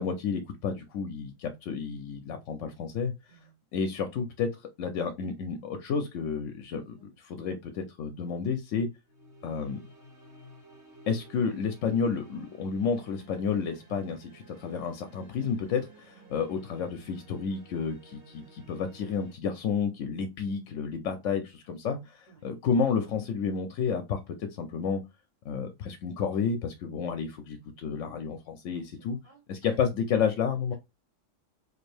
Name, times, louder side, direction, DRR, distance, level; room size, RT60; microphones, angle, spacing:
voice 1, 0.0-3.1 3.7-4.5 4.8-8.9 9.4-9.8 11.1-25.0 25.4-29.2 29.5-30.7, left 6 dB, 80° left, 0.9 m, -31 dB
voice 2, 6.8-7.1 22.3-22.6 28.7-29.8, right 1 dB, 65° right, 2.5 m, -57 dB
sound 1, 9.1-19.3, right 2 dB, 45° right, 2.0 m, -53 dB
4.3 x 2.6 x 3.2 m
omnidirectional pair, 1.3 m